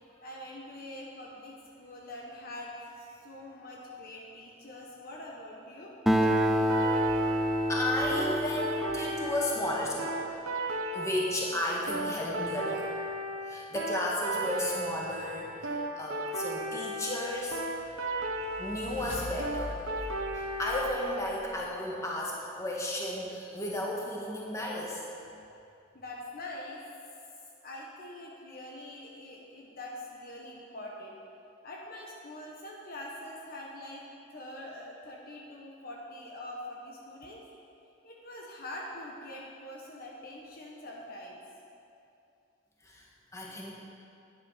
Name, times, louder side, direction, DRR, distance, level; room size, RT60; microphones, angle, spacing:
voice 1, 0.2-2.7 3.1-5.9 25.9-26.8 27.6-31.2 31.6-34.0 34.3-37.4 38.0-41.4 43.5-43.6, left 1 dB, 45° left, -2 dB, 1.3 m, -44 dB
Acoustic guitar, 6.1-9.9, equal, ahead, 0.6 m, -28 dB
sound 1, 6.2-21.1, right 1 dB, 85° right, 1.2 m, -35 dB
voice 2, 7.0-12.9 13.5-17.6 18.6-19.7 20.3-25.0 42.8-43.0 43.3-43.7, left 1 dB, 15° left, -4 dB, 1.8 m, -34 dB
sound 2, 17.8-21.8, left 1 dB, 65° left, 1.9 m, -44 dB
11.5 x 10.0 x 5.8 m, 2.7 s
head